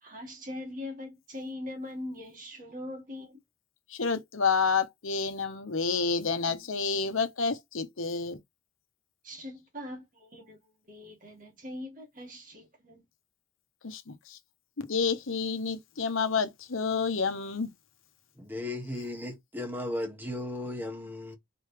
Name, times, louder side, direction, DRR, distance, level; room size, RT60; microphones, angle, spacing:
voice 1, 0.0-3.4 9.2-13.0, left 1 dB, 40° right, 1.9 m, -41 dB
voice 2, 3.9-8.4 13.8-14.4 14.9-17.7, left 5 dB, 80° left, 1.0 m, -29 dB
voice 3, 18.3-21.4, left 1 dB, 10° right, 1.3 m, -36 dB
4.3 x 3.4 x 3.3 m
head